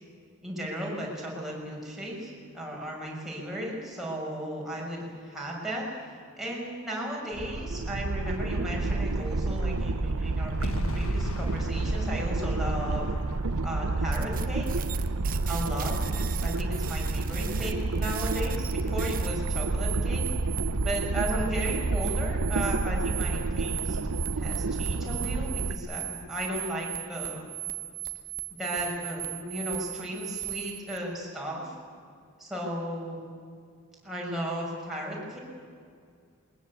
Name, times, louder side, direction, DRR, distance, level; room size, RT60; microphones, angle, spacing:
voice 1, 0.4-13.1 13.6-14.7 15.5-20.2 20.8-27.5 28.6-31.7 32.4-33.2 34.0-35.4, equal, ahead, -4 dB, 6.0 m, -35 dB
sound 1, 7.3-25.8, right 3 dB, 80° right, 0.8 m, -29 dB
sound 2, 10.6-15.8, left 1 dB, 70° left, 1.5 m, -37 dB
sound 3, 14.1-31.0, right 14 dB, 40° right, 1.1 m, -38 dB
21.5 x 20.0 x 8.4 m, 2.3 s
head